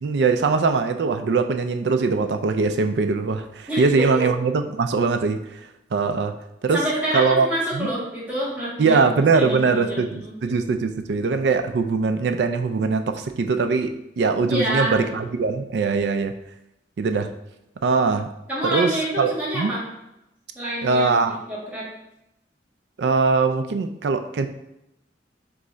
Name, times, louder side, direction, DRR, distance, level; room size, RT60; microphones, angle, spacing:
voice 1, 0.0-5.4 5.9-6.3 6.6-6.8 7.1-7.5 7.7-7.9 8.8-16.3 17.0-17.3 17.8-18.3 18.6-19.7 20.8-21.3 23.0-24.5, right 4 dB, 70° right, 8 dB, 0.4 m, -21 dB
voice 2, 3.7-4.2 6.7-9.0 9.3-9.9 10.2-10.3 14.5-15.0 18.5-19.8 20.5-21.2 21.5-21.9, right 1 dB, 10° right, -8 dB, 1.5 m, -27 dB
3.6 x 3.2 x 3.9 m, 0.86 s
head